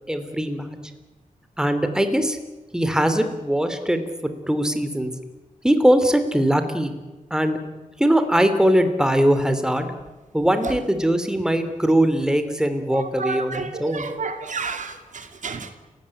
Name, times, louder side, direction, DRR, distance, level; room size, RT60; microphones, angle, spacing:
voice 1, 0.1-0.7 1.6-2.4 2.7-5.1 5.6-6.9 7.3-7.6 8.0-9.9 10.3-14.1, equal, 5° right, 9 dB, 3.0 m, -21 dB
voice 2, 13.2-15.7, right 4 dB, 60° right, 7 dB, 2.7 m, -31 dB
29.5 x 17.0 x 9.8 m, 1.2 s
wide cardioid pair, 90°, 14 cm